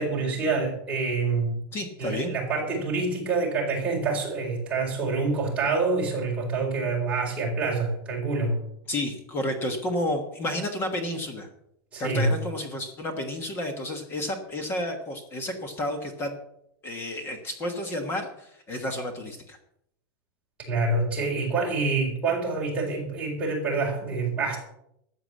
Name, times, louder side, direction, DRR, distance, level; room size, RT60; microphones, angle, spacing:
voice 1, 0.0-1.6 2.0-8.6 11.9-12.3 20.7-24.6, right 3 dB, 10° right, -4 dB, 4.5 m, -26 dB
voice 2, 1.7-2.3 8.9-11.5 12.0-16.4 16.8-19.6, left 1 dB, 20° left, 6 dB, 1.3 m, -31 dB
13.5 x 8.1 x 7.7 m, 0.75 s
supercardioid pair, 180°, 12 cm